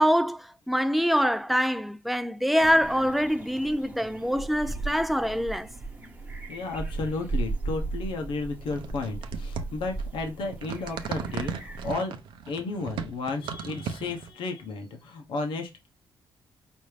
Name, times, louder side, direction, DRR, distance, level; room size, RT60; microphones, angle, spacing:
voice 1, 0.0-5.7, equal, ahead, 0.4 m, -24 dB
sound 1, 2.6-12.0, right 3 dB, 15° right, 0.9 m, -36 dB
voice 2, 6.5-12.2 12.5-15.9, left 3 dB, 80° left, 0.9 m, -33 dB
sound 2, 8.6-14.3, right 7 dB, 85° right, 0.6 m, -36 dB
5.2 x 2.7 x 3.2 m
cardioid pair, 120°, 8 cm